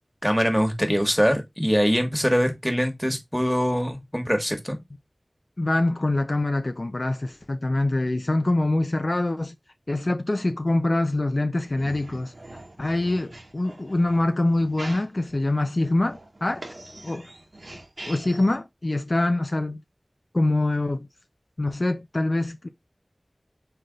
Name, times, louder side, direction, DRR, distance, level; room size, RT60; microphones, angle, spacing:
voice 1, 0.2-4.8, equal, ahead, 1.4 m, -23 dB
voice 2, 5.6-9.5 9.9-12.3 12.8-16.6 17.0-17.3 18.1-19.8 20.3-21.1 21.6-22.7, left 2 dB, 60° left, 0.5 m, -24 dB
sound 1, 11.6-18.5, right 1 dB, 75° right, 1.2 m, -43 dB
4.0 x 3.3 x 3.9 m
wide cardioid pair, 45°, 0 cm